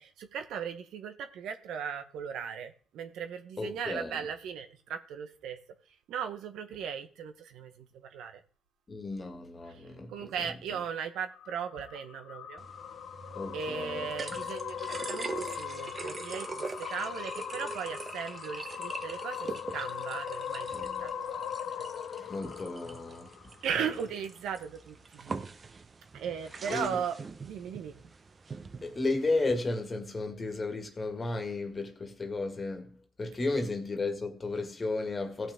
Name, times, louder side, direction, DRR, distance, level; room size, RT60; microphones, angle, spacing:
voice 1, 0.0-5.6 6.1-8.4 9.7-9.8 10.1-12.6 13.5-21.9 23.6-25.4 26.1-27.2 27.4-27.9, right 7 dB, 85° right, 1.1 m, -37 dB
voice 2, 3.6-4.2 8.9-10.3 10.7-10.8 13.3-14.1 22.1-23.3 23.8-23.9 26.7-27.0 28.8-35.5, left 3 dB, 30° left, 1.8 m, -34 dB
sound 1, 11.3-23.8, left 9 dB, 70° left, 0.5 m, -40 dB
sound 2, 12.6-29.6, right 4 dB, 35° right, 0.8 m, -43 dB
16.5 x 6.1 x 3.6 m
cardioid pair, 90°, 0 cm